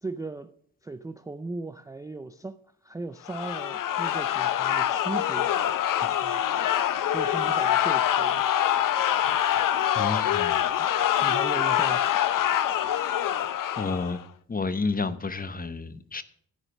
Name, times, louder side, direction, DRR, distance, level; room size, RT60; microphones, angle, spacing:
voice 1, 0.0-0.5 0.8-5.5 6.0-6.4 7.1-8.5 10.8-10.9 11.2-12.2, right 3 dB, 10° right, 0.3 m, -37 dB
sound 1, 3.3-14.2, left 10 dB, 65° left, 0.6 m, -25 dB
voice 2, 9.9-10.6 13.8-14.2 14.5-16.2, left 4 dB, 25° left, 0.7 m, -30 dB
13.0 x 4.9 x 6.3 m
cardioid pair, 85°, 36 cm